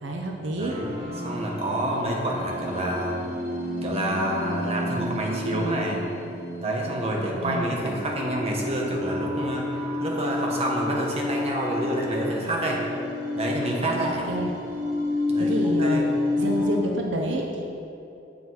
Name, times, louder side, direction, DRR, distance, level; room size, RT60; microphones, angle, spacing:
voice 1, 0.0-1.2 7.4-7.7 14.0-14.5 15.4-16.1 16.4-17.6, right 1 dB, 80° right, 1 dB, 0.7 m, -29 dB
voice 2, 0.6-1.0 1.2-3.2 3.8-6.0 6.6-9.7 10.0-12.8 13.4-14.3 15.3-16.0, right 1 dB, 35° right, -2 dB, 1.2 m, -28 dB
sound 1, 0.6-16.8, left 2 dB, 50° right, 1.4 m, -30 dB
8.1 x 7.1 x 4.1 m, 2.9 s
head